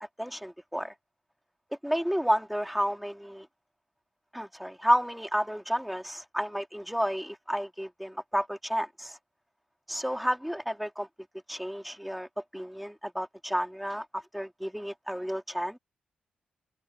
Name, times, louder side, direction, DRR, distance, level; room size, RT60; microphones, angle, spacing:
voice 1, 0.2-0.9 1.8-3.5 4.3-9.2 9.9-11.1 11.5-15.8, equal, ahead, 3.7 m, -31 dB
hypercardioid pair, 40°, 3 cm